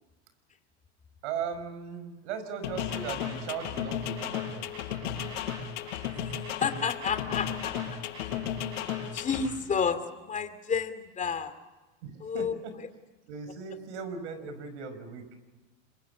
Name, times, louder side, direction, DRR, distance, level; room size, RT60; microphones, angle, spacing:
voice 1, 1.2-4.7 12.0-12.7 13.3-15.3, right 6 dB, 70° right, 10 dB, 5.8 m, -38 dB
sound 1, 2.6-9.5, left 8 dB, 80° left, 7.6 m, -34 dB
voice 2, 6.2-8.0 9.1-11.5 12.2-12.6, left 6 dB, 20° left, 10 dB, 2.5 m, -31 dB
27.0 x 23.5 x 8.1 m, 1.2 s
supercardioid pair, 120°, 36 cm